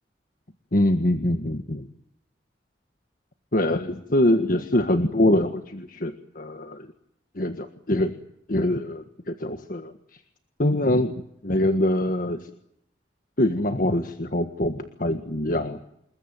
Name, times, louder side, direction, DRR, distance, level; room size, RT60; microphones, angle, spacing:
voice 1, 0.7-1.9 3.5-6.9 7.3-8.1 8.5-9.9 10.6-12.4 13.4-15.8, left 1 dB, 50° left, 8 dB, 1.6 m, -24 dB
28.0 x 21.5 x 9.3 m, 0.76 s
head